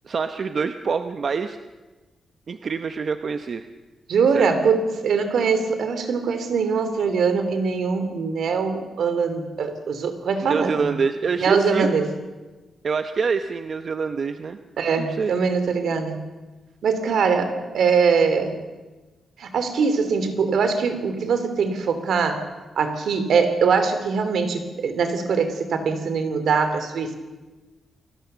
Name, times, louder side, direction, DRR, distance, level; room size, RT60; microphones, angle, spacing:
voice 1, 0.1-1.6 2.5-3.7 4.3-4.5 10.4-11.9 12.8-14.6 15.0-15.3, right 5 dB, 45° right, 9 dB, 0.8 m, -25 dB
voice 2, 4.1-11.0 11.4-12.1 14.8-16.2 16.8-18.6 19.4-22.4 22.7-27.2, right 5 dB, 75° right, 9 dB, 3.1 m, -22 dB
29.0 x 19.5 x 6.9 m, 1.2 s
wide cardioid pair, 160°, 0 cm